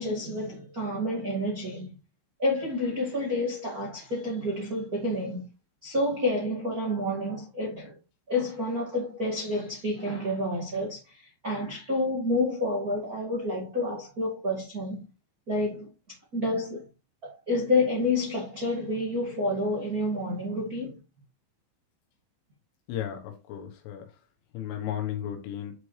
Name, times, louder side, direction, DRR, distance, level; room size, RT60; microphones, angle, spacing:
voice 1, 0.0-1.9 2.4-5.5 5.8-7.9 8.3-15.0 15.5-15.9 16.3-16.8 17.2-21.0, left 1 dB, 50° right, 1.1 m, -29 dB
voice 2, 22.9-24.1 24.5-25.7, left 10 dB, 85° left, 3.8 m, -34 dB
11.0 x 4.8 x 3.3 m
omnidirectional pair, 5.6 m